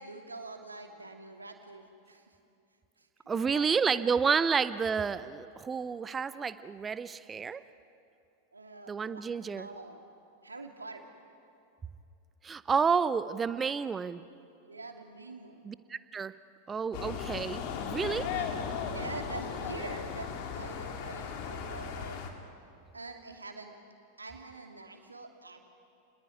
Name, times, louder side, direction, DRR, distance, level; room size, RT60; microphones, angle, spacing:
voice 1, 0.0-2.4 3.0-3.1 3.3-4.1 8.5-10.0 10.4-11.1 14.6-15.6 18.2-22.2 22.9-23.8 24.2-25.6, right 3 dB, 80° right, 4 dB, 2.7 m, -45 dB
voice 2, 3.3-7.6 8.9-9.7 12.4-14.2 15.7-16.3 16.7-18.3, right 6 dB, 20° right, 15 dB, 0.7 m, -30 dB
sound 1, 16.9-22.3, left 7 dB, 45° left, 2.6 m, -37 dB
30.0 x 20.0 x 9.9 m, 2.6 s
figure-of-eight pair, 90°, 0 cm